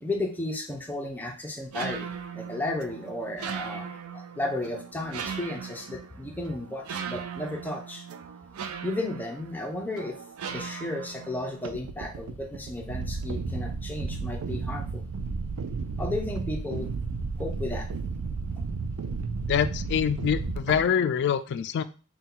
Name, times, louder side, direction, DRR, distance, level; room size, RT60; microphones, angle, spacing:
voice 1, 0.0-8.0 8.8-10.2 10.5-15.1 16.0-16.9 17.4-17.9, left 2 dB, 10° left, 1 dB, 0.7 m, -33 dB
sound 1, 1.7-20.9, right 5 dB, 75° right, 0.4 m, -35 dB
voice 2, 19.5-21.8, left 8 dB, 50° left, 13 dB, 0.3 m, -25 dB
4.1 x 2.3 x 3.7 m, 0.36 s
head